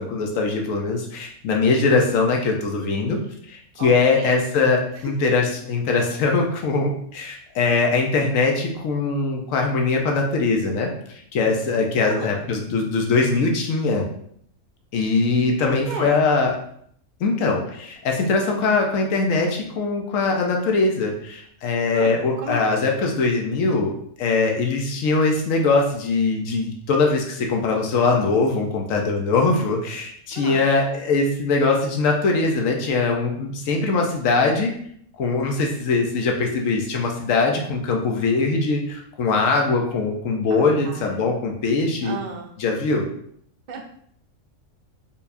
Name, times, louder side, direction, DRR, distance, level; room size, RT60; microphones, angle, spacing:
voice 1, 0.0-3.2 3.5-14.0 14.9-16.5 17.2-23.9 24.2-34.7 35.2-42.1 42.6-43.1, left 3 dB, 90° left, 1 dB, 1.1 m, -21 dB
voice 2, 12.0-12.4 15.6-16.2 21.9-22.6 30.3-30.7 40.5-41.2 42.0-42.5 43.7-43.8, right 3 dB, 55° right, 1 dB, 0.5 m, -34 dB
4.5 x 3.4 x 2.6 m, 0.66 s
omnidirectional pair, 1.3 m